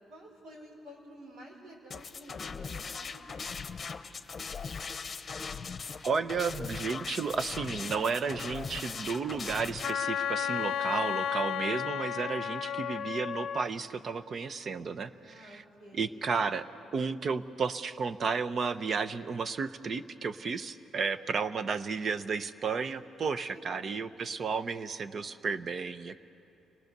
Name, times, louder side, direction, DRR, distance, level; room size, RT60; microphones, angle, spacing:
voice 1, 0.1-3.9 10.6-11.1 15.1-16.3 21.1-21.9 23.4-24.1, equal, 80° right, -3 dB, 5.6 m, -52 dB
sound 1, 1.9-9.9, left 5 dB, 40° left, 0.9 m, -39 dB
voice 2, 6.0-15.6 16.0-16.7 16.9-26.2, right 5 dB, 50° right, 12 dB, 0.8 m, -33 dB
Wind instrument woodwind instrument, 9.8-13.7, left 9 dB, 70° left, 0.6 m, -33 dB
29.5 x 19.5 x 6.7 m, 2.7 s
cardioid pair, 90°, 0 cm